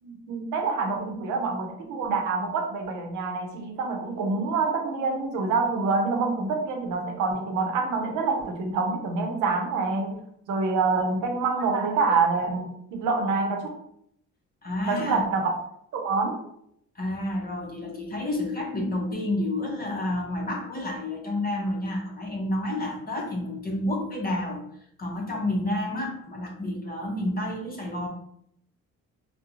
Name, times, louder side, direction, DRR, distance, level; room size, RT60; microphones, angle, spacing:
voice 1, 0.0-10.2 10.5-13.7 14.8-15.5 15.9-16.4, right 4 dB, 90° right, 3 dB, 0.6 m, -26 dB
voice 2, 14.6-15.2 16.9-24.6 25.0-28.1, left 1 dB, 30° left, 0 dB, 0.6 m, -30 dB
2.4 x 2.1 x 2.9 m, 0.70 s
cardioid pair, 90°, 30 cm